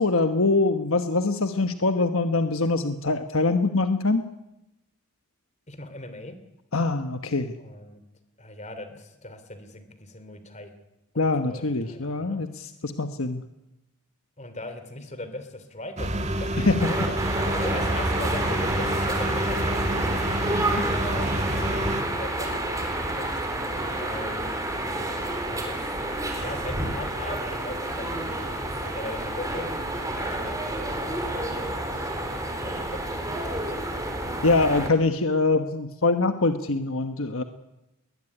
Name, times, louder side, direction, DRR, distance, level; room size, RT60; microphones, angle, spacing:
voice 1, 0.0-4.2 6.7-7.5 11.2-13.4 16.6-16.9 20.6-20.9 34.4-37.4, left 3 dB, 65° left, 8 dB, 1.2 m, -24 dB
voice 2, 5.7-6.4 7.6-8.0 8.4-10.7 11.4-12.4 14.4-17.1 17.5-21.6 22.2-24.5 25.5-25.9 26.4-29.7 30.3-32.1 32.6-34.0, left 1 dB, 30° left, 10 dB, 2.9 m, -40 dB
sound 1, 16.0-22.0, right 1 dB, 30° right, 2.2 m, -28 dB
sound 2, 16.8-34.9, right 1 dB, 15° right, 4.2 m, -29 dB
21.0 x 20.5 x 9.9 m, 0.93 s
head